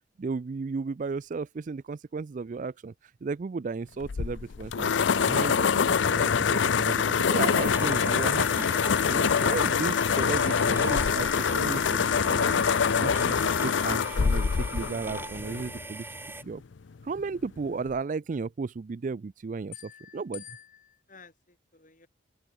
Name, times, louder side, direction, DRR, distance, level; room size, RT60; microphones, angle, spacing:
voice 1, 0.2-2.9 3.2-8.7 9.1-12.6 13.0-16.1 16.4-16.6 17.0-20.4, right 4 dB, 40° right, 0.4 m, -34 dB
sound 1, 4.0-15.8, left 6 dB, 75° left, 0.5 m, -25 dB
sound 2, 7.4-16.4, right 3 dB, 10° right, 1.4 m, -41 dB
voice 2, 19.7-22.1, left 10 dB, 45° left, 5.4 m, -49 dB
open air
head